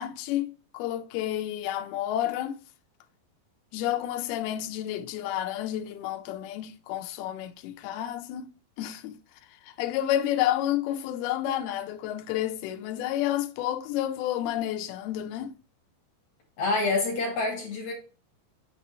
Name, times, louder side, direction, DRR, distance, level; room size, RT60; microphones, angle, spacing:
voice 1, 0.0-2.6 3.7-8.5 8.8-9.2 9.7-15.5, left 12 dB, 80° left, 2.6 m, -30 dB
voice 2, 16.6-17.9, left 3 dB, 50° left, 3.3 m, -27 dB
6.8 x 4.4 x 4.0 m
omnidirectional pair, 4.5 m